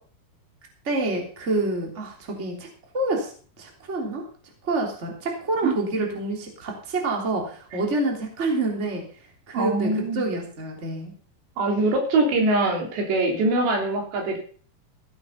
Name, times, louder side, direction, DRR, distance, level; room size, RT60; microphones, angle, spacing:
voice 1, 0.8-2.7 2.9-3.3 3.6-4.2 4.6-9.0 9.5-11.1, right 2 dB, 20° right, 1 dB, 2.8 m, -27 dB
voice 2, 9.5-10.3 11.6-14.4, right 2 dB, 80° right, 2 dB, 5.2 m, -23 dB
15.5 x 8.7 x 5.8 m, 0.43 s
omnidirectional pair, 4.9 m